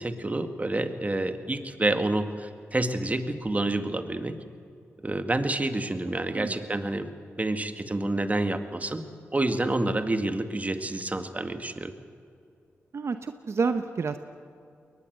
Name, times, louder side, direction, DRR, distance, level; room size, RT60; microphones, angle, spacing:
voice 1, 0.0-4.4 5.0-7.1 7.4-9.0 9.3-11.9, right 2 dB, 30° right, 8 dB, 2.0 m, -28 dB
voice 2, 12.9-14.2, right 4 dB, 60° right, 9 dB, 0.9 m, -29 dB
22.0 x 19.5 x 8.1 m, 2.4 s
cardioid pair, 50°, 5 cm